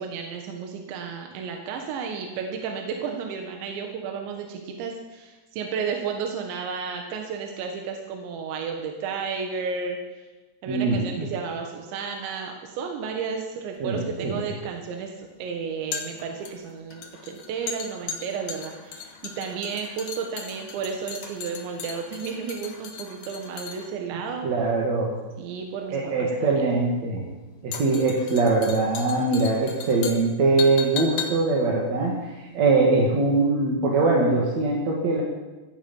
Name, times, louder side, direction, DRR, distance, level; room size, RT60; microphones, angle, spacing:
voice 1, 0.0-10.0 10.6-24.5 25.4-26.6, right 6 dB, 85° right, 3 dB, 3.7 m, -32 dB
voice 2, 10.7-11.3 13.8-14.4 24.4-25.1 25.9-27.2 27.6-35.2, right 3 dB, 45° right, -3 dB, 2.8 m, -22 dB
sound 1, 13.8-33.0 33.3-33.4, left 7 dB, 65° left, 3.3 m, -38 dB
16.0 x 15.0 x 5.5 m, 1.2 s
omnidirectional pair, 5.1 m